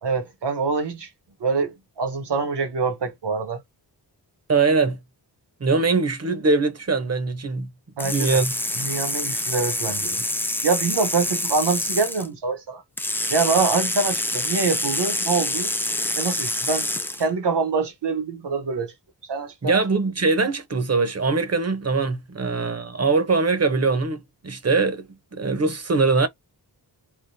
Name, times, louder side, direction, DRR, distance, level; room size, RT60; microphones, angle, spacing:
voice 1, 0.0-1.1 1.4-3.6 8.0-8.4 8.8-10.2 10.6-12.8 13.3-15.7 16.2-16.9 17.2-18.9 19.2-19.7, right 4 dB, 75° right, 1.1 m, -25 dB
voice 2, 4.5-5.0 5.6-7.7 8.0-8.5 19.6-25.1 25.3-26.3, right 4 dB, 35° right, 0.8 m, -22 dB
sound 1, 8.0-12.3 13.0-17.3, left 1 dB, 5° left, 0.3 m, -26 dB
3.7 x 2.3 x 2.7 m
wide cardioid pair, 75°, 41 cm